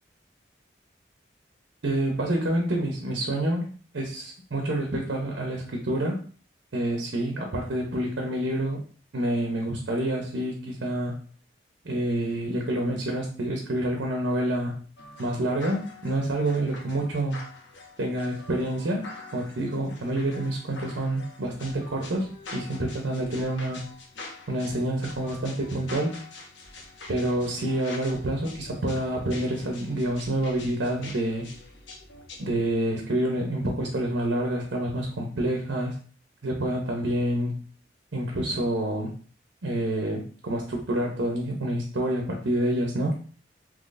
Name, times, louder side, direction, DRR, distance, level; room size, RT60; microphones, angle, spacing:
voice 1, 1.8-3.7 3.9-6.2 6.7-8.8 9.1-11.1 11.8-14.7 15.2-17.4 18.0-19.1 19.3-23.8 24.5-26.2 27.1-31.5 32.4-36.0 36.4-37.6 38.1-39.1 39.6-43.1, right 1 dB, 85° right, 1 dB, 0.7 m, -28 dB
sound 1, 15.0-32.6, left 3 dB, 80° left, 0.8 m, -45 dB
3.9 x 3.0 x 2.5 m, 0.41 s
head